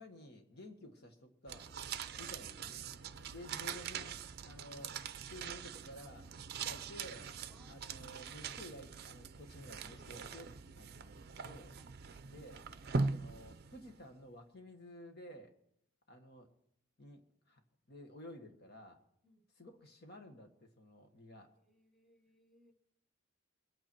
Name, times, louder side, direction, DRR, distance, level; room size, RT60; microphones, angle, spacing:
voice 1, 0.0-1.7 2.2-2.8 3.3-6.3 6.6-7.3 7.7-11.7 12.3-12.6 13.1-15.5 16.1-16.5 17.0-17.6 17.9-19.0 19.5-21.5, equal, 50° left, 4 dB, 1.7 m, -53 dB
sound 1, 1.5-14.0, right 4 dB, 50° right, 0.6 m, -42 dB
voice 2, 7.5-8.2 11.7-12.1 19.2-19.5 21.4-22.7, equal, ahead, 2 dB, 1.1 m, -69 dB
22.0 x 9.0 x 4.6 m, 0.76 s
head